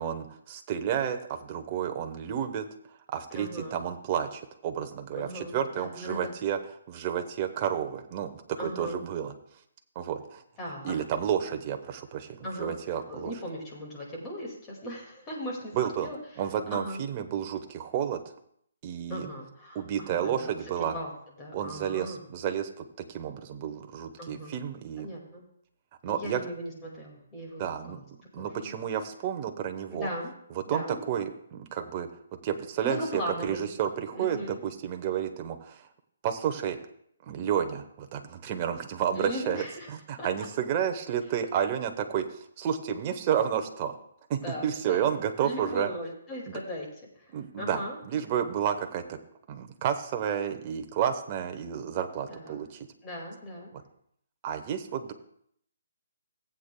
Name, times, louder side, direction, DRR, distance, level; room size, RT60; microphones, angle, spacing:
voice 1, 0.0-2.6 3.1-6.6 6.9-9.3 9.9-10.4 10.8-13.3 15.7-16.1 16.4-18.2 18.8-19.3 19.7-20.9 21.5-25.1 26.0-26.4 27.6-28.0 28.3-30.1 30.5-32.1 32.4-35.9 36.2-36.8 37.2-44.0 44.3-45.9 47.3-49.2 49.5-52.9 54.4-55.1, right 9 dB, 25° right, 6 dB, 0.8 m, -31 dB
voice 2, 3.3-3.8 5.2-6.3 8.6-9.0 10.6-10.9 12.4-12.7 13.1-16.2 16.7-17.0 19.1-20.4 20.8-21.1 21.4-22.2 24.2-24.6 25.0-25.4 26.1-28.0 28.4-28.8 29.9-30.3 30.7-31.0 32.8-33.7 34.1-34.6 39.1-39.9 40.2-40.3 44.4-45.1 45.4-46.9 47.2-48.0 52.3-52.6 53.0-53.7, equal, 15° left, -2 dB, 2.0 m, -38 dB
18.0 x 8.2 x 2.2 m, 0.68 s
hypercardioid pair, 165°, 0 cm